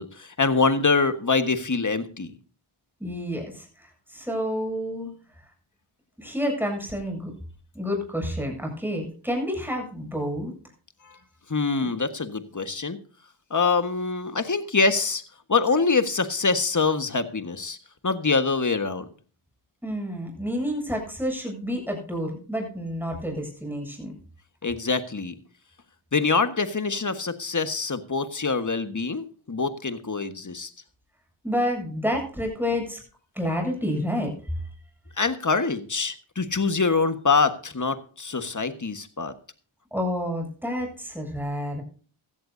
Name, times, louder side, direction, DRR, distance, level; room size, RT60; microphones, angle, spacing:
voice 1, 0.0-2.3 11.0-11.2 11.5-13.0 13.5-15.2 15.5-17.8 18.0-19.1 24.6-25.3 26.1-30.7 35.2-39.3, left 4 dB, 35° left, 10 dB, 1.5 m, -24 dB
voice 2, 3.0-5.1 6.2-7.3 7.7-10.5 19.8-24.1 31.4-33.0 33.3-34.3 39.9-41.8, equal, 5° right, 2 dB, 7.7 m, -29 dB
16.5 x 13.5 x 2.7 m, 0.40 s
cardioid pair, 50°, 50 cm